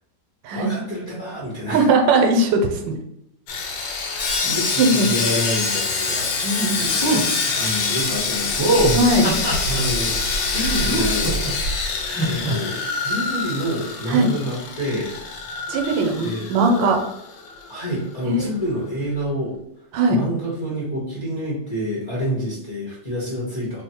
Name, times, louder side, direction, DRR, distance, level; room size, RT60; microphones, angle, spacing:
voice 1, 0.5-1.9 4.1-6.8 7.5-8.8 9.6-10.2 10.5-11.6 12.2-15.2 16.2-16.5 17.7-19.5 20.1-23.8, equal, 30° left, -6 dB, 0.8 m, -28 dB
voice 2, 1.7-2.9 4.8-5.1 6.4-6.9 8.9-9.3 14.1-14.3 15.7-17.0 18.2-18.5 19.9-20.2, right 2 dB, 85° right, 3 dB, 1.3 m, -19 dB
Sawing, 3.5-17.7 18.0-18.2 18.6-18.7, left 4 dB, 90° left, 1.4 m, -25 dB
sound 1, 7.0-7.2 8.6-9.8 10.5-11.5 12.0-12.5, right 1 dB, 15° right, 1.1 m, -22 dB
3.3 x 2.1 x 4.2 m, 0.78 s
omnidirectional pair, 2.0 m